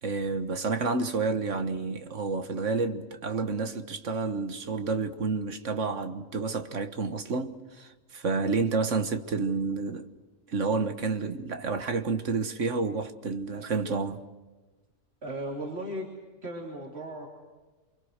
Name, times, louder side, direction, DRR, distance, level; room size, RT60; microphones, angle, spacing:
voice 1, 0.0-10.1 10.5-14.2, right 4 dB, 70° right, 1.7 m, -30 dB
voice 2, 15.2-16.1 16.4-17.3, right 1 dB, 55° right, 3.5 m, -36 dB
28.5 x 24.5 x 6.6 m
omnidirectional pair, 1.3 m